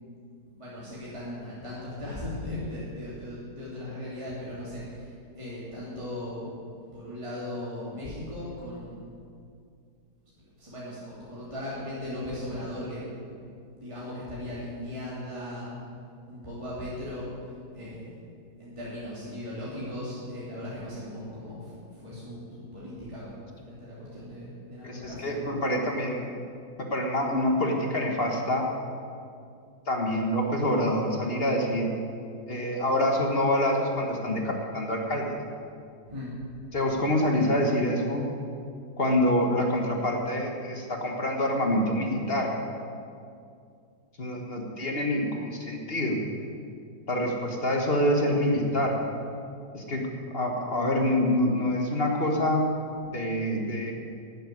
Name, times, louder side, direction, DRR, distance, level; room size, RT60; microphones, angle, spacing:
voice 1, 0.5-9.1 10.6-13.4 13.8-15.7 16.3-17.3 17.7-18.2 18.6-23.4 23.6-25.4 36.1-36.3, left 1 dB, 15° right, -8 dB, 2.8 m, -38 dB
voice 2, 24.8-26.3 26.8-28.7 29.9-31.9 32.5-35.4 36.7-38.2 39.0-42.5 44.2-46.2 47.1-48.9 49.7-52.6 53.1-53.9, left 1 dB, 35° left, 2 dB, 1.6 m, -26 dB
11.5 x 7.8 x 9.6 m, 2.4 s
omnidirectional pair, 1.8 m